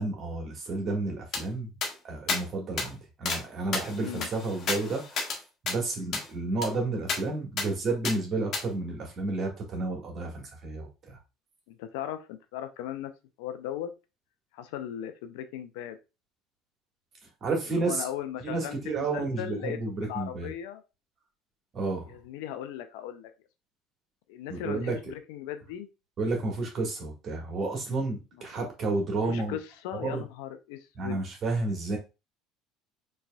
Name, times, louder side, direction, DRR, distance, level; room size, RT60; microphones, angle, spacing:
voice 1, 0.0-1.7 2.0-5.3 5.6-11.2 17.4-18.1 18.4-20.5 21.7-22.1 24.5-25.0 26.2-29.6 30.0-30.2 31.0-32.0, right 3 dB, 45° right, 1 dB, 1.7 m, -31 dB
sound 1, 1.3-1.4 1.8-1.9 2.3-2.4 2.8-2.9 3.3-3.4 3.7-5.4 5.7-5.8 6.1-6.3 6.6-6.7 7.1-7.2 7.6-7.7 8.0-8.2 8.5-8.6, left 4 dB, 50° left, 1.2 m, -31 dB
voice 2, 3.9-4.3 11.7-13.1 13.4-13.9 14.5-16.0 17.7-20.8 22.1-23.3 24.3-25.9 28.6-28.7 29.2-31.2, left 11 dB, 70° left, 10 dB, 0.5 m, -38 dB
4.7 x 3.3 x 2.3 m, 0.28 s
hypercardioid pair, 65°, 0 cm